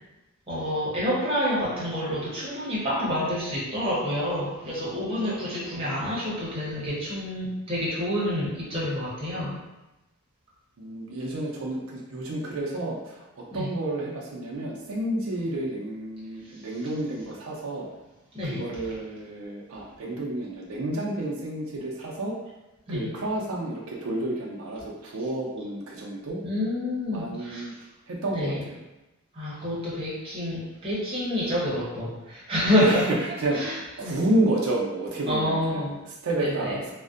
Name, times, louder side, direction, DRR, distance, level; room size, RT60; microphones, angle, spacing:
voice 1, 0.5-9.6 13.5-13.7 18.3-18.6 22.9-23.1 26.4-27.7 28.3-28.6 29.3-33.1 33.5-33.7 34.0-34.2 35.3-35.9 36.4-36.8, left 1 dB, 25° right, -7 dB, 0.7 m, -28 dB
voice 2, 10.8-17.9 18.4-22.3 22.9-26.4 27.1-27.7 28.1-28.8 32.8-36.9, right 1 dB, 85° right, -2 dB, 0.4 m, -30 dB
2.5 x 2.1 x 2.4 m, 1.0 s
head